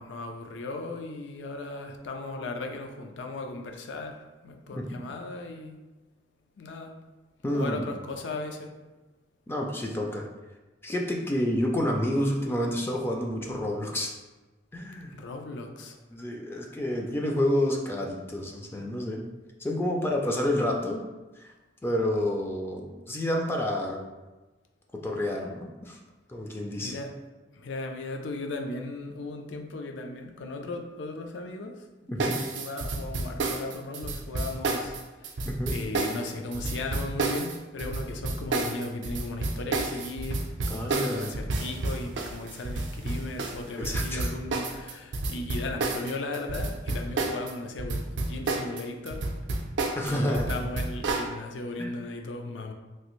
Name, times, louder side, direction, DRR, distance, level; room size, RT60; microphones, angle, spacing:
voice 1, 0.0-4.2 4.4-5.8 6.6-6.9 7.5-8.7 15.1-16.0 26.5-27.1 27.5-35.4 35.7-49.2 50.0-52.7, left 2 dB, 80° left, 4 dB, 0.4 m, -37 dB
voice 2, 7.4-7.8 9.5-10.2 10.8-14.1 14.7-15.1 16.1-19.2 19.6-21.0 21.4-21.5 21.8-24.0 25.0-26.0 26.3-26.9 32.1-32.3 35.5-35.7 40.7-41.3 43.8-44.3 50.0-50.6 51.8-51.9, left 1 dB, 15° left, 0 dB, 0.3 m, -29 dB
sound 1, 32.2-47.5 47.8-51.3, right 3 dB, 75° right, 0.4 m, -30 dB
3.1 x 2.5 x 3.0 m, 1.2 s
head